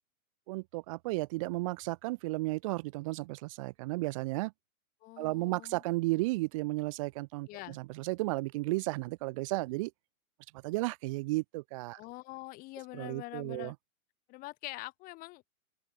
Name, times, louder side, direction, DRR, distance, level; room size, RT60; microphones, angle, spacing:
voice 1, 0.5-4.5 5.2-9.9 10.6-12.0 12.9-13.7, right 22 dB, 20° right, 1.0 m, -34 dB
voice 2, 5.0-5.8 7.5-7.8 12.0-13.7 14.3-15.5, left 21 dB, 20° left, 2.1 m, -44 dB
open air
hypercardioid pair, 170°, 44 cm